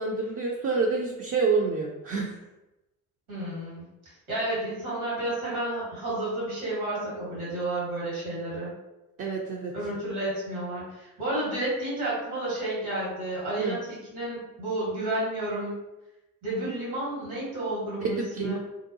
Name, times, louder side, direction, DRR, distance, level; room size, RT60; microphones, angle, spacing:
voice 1, 0.0-2.3 9.2-9.7 13.6-13.8 18.0-18.6, right 4 dB, 35° right, -2 dB, 0.4 m, -28 dB
voice 2, 3.3-3.8 4.3-8.7 9.7-15.8 16.4-18.6, right 1 dB, 85° right, -7 dB, 1.5 m, -31 dB
2.7 x 2.2 x 2.6 m, 0.98 s
hypercardioid pair, 45°, 42 cm